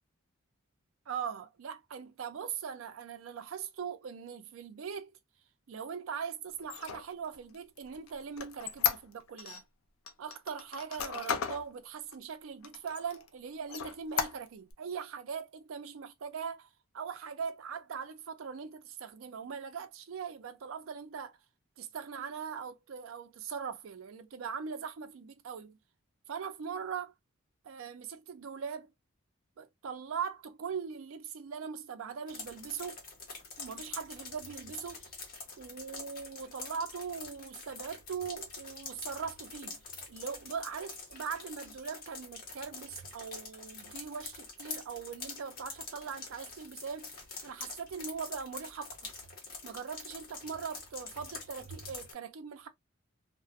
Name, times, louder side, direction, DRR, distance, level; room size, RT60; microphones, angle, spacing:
voice 1, 1.1-5.2 5.7-9.6 10.2-16.7 16.9-21.4 21.8-25.8 26.3-27.1 27.6-28.9 29.6-33.0 33.6-35.1 35.6-39.8 40.1-47.1 47.4-49.1 49.6-52.7, right 6 dB, 70° right, 0.4 m, -41 dB
Squeak, 6.6-9.6 10.1-11.6 12.1-12.2 12.6-13.3 13.7-14.7, left 8 dB, 80° left, 0.4 m, -35 dB
sound 1, 32.3-52.1, left 3 dB, 45° left, 0.9 m, -46 dB
2.4 x 2.1 x 2.5 m
head